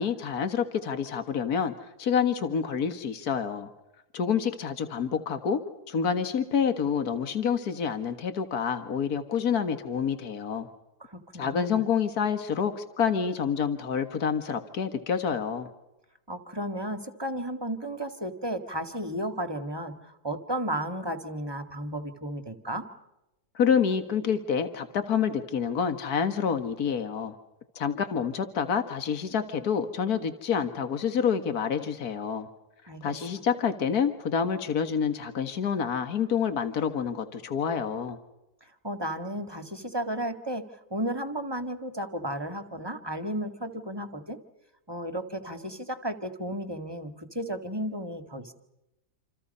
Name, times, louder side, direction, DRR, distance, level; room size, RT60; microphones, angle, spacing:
voice 1, 0.0-3.7 4.1-5.6 5.9-10.7 11.4-15.7 23.6-27.4 27.8-32.5 33.0-38.2, left 7 dB, 65° left, 8 dB, 2.1 m, -28 dB
voice 2, 11.0-11.8 16.3-22.9 32.9-33.0 38.8-40.7 40.9-44.4 44.9-48.5, right 1 dB, 15° right, 8 dB, 1.9 m, -33 dB
28.0 x 27.5 x 5.5 m, 0.92 s
omnidirectional pair, 1.8 m